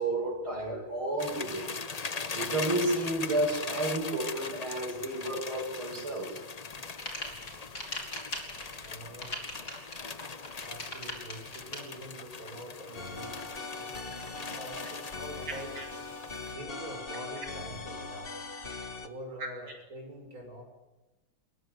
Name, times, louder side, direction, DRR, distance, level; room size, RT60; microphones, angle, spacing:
voice 1, 0.0-1.7 2.3-6.4 15.8-15.9 19.4-19.5, right 1 dB, 80° right, -2 dB, 8.4 m, -31 dB
sound 1, 1.2-16.5, left 4 dB, 85° left, 0.3 m, -41 dB
sound 2, 6.7-11.8, left 2 dB, 45° left, 5.7 m, -39 dB
voice 2, 8.8-9.6 10.6-15.7 16.4-18.3 19.0-20.6, equal, 40° right, 2 dB, 7.0 m, -45 dB
sound 3, 12.9-19.1, left 3 dB, 30° left, 1.8 m, -41 dB
30.0 x 22.0 x 8.3 m, 1.1 s
omnidirectional pair, 2.3 m